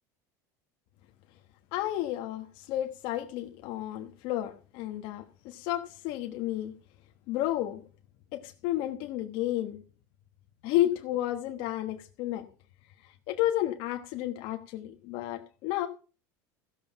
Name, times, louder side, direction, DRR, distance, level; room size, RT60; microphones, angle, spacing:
voice 1, 1.7-6.7 7.3-7.8 8.3-9.8 10.6-12.5 13.0-15.9, left 14 dB, 65° left, 1.2 m, -32 dB
14.5 x 7.3 x 5.8 m
supercardioid pair, 125°, 9 cm